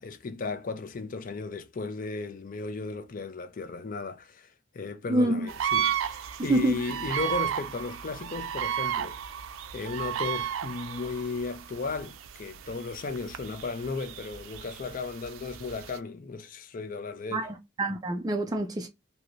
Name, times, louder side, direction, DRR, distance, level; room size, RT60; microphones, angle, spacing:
voice 1, 0.0-9.2 9.7-17.5, left 4 dB, 45° left, 0.4 m, -35 dB
voice 2, 5.1-5.5 6.4-6.8 17.3-18.9, right 2 dB, 20° right, 0.4 m, -26 dB
sound 1, 5.5-16.0, right 9 dB, 85° right, 0.4 m, -34 dB
2.7 x 2.6 x 3.0 m
head